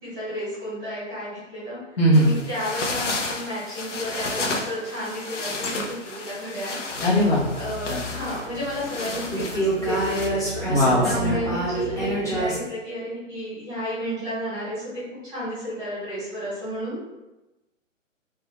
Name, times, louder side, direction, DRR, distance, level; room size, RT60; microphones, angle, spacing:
voice 1, 0.0-1.8 2.1-6.8 7.5-10.7 11.0-17.0, equal, 10° right, -11 dB, 1.2 m, -32 dB
voice 2, 2.0-2.3 7.0-7.4 7.9-8.0 10.7-11.3, equal, 50° left, -6 dB, 0.9 m, -19 dB
sound 1, 2.1-10.3, left 3 dB, 65° left, 0.5 m, -33 dB
sound 2, 6.9-12.6, right 1 dB, 10° left, 1.1 m, -28 dB
2.6 x 2.3 x 2.8 m, 1.0 s
figure-of-eight pair, 130°, 39 cm